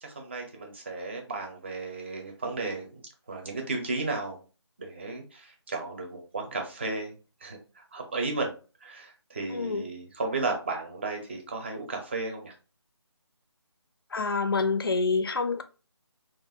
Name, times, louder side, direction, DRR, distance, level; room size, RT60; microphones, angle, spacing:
voice 1, 0.0-3.0 3.3-4.4 4.8-7.1 7.4-8.5 8.8-12.5, right 3 dB, 25° right, 0.6 m, -34 dB
voice 2, 9.5-9.8 14.1-15.6, left 4 dB, 55° left, 0.4 m, -27 dB
3.4 x 2.4 x 2.7 m
figure-of-eight pair, 160°, 15 cm